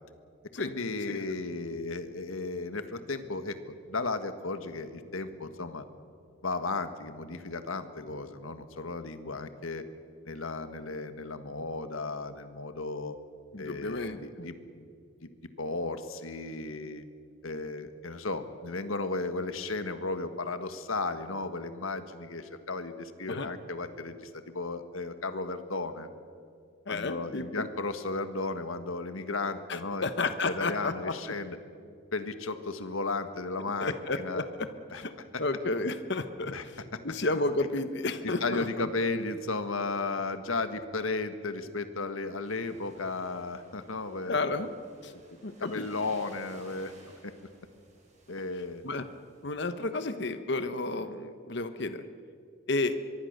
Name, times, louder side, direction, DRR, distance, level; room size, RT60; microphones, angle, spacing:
voice 1, 0.6-5.8 6.4-9.8 10.3-13.2 13.6-14.9 15.6-17.0 17.4-26.1 26.9-30.0 30.4-31.6 32.1-34.4 34.9-35.4 36.5-37.0 38.2-44.4 45.0-45.2 45.6-46.9 47.2-47.3 48.3-48.8, left 3 dB, 80° left, 10 dB, 1.6 m, -35 dB
voice 2, 13.5-14.5 23.3-23.5 26.9-27.7 29.7-31.1 33.8-34.7 35.0-35.1 35.4-36.5 37.0-38.9 44.3-44.8 45.0-45.1 45.4-45.9 48.8-49.1 49.4-52.0 52.7-52.9, left 2 dB, 55° left, 10 dB, 1.1 m, -32 dB
sound 1, 42.4-49.6, right 2 dB, 35° right, 6.0 m, -57 dB
24.5 x 22.5 x 6.7 m, 2.3 s
head